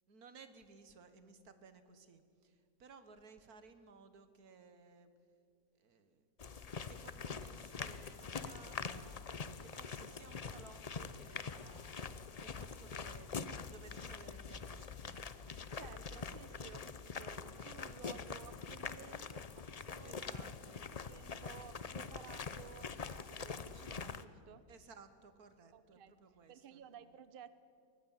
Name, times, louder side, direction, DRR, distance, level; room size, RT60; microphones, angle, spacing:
voice 1, 0.1-5.1 5.7-6.3 6.9-16.1 20.0-20.9 24.7-26.8, right 4 dB, 85° right, 10 dB, 1.9 m, -59 dB
sound 1, 6.4-24.2, left 5 dB, 40° left, 0.5 m, -45 dB
voice 2, 15.7-20.5 20.9-24.7 25.7-26.2 26.5-27.5, right 8 dB, 45° right, 13 dB, 0.9 m, -56 dB
23.0 x 18.5 x 9.0 m, 2.3 s
omnidirectional pair, 1.6 m